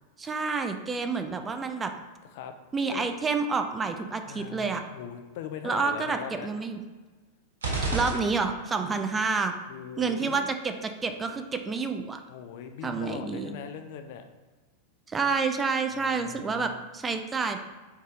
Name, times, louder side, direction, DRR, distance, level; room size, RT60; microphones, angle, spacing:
voice 1, 0.2-1.9 2.7-4.8 5.6-6.8 7.9-9.5 10.0-12.2 12.8-13.5 15.1-17.6, right 4 dB, 15° right, 6 dB, 0.4 m, -29 dB
voice 2, 4.3-6.5 8.8-9.1 9.7-10.5 12.3-14.2 15.9-16.8, left 8 dB, 50° left, 7 dB, 0.4 m, -41 dB
sound 1, 7.6-8.9, right 2 dB, 65° right, 0.8 m, -31 dB
4.5 x 3.1 x 3.6 m, 1.3 s
figure-of-eight pair, 90°, 0 cm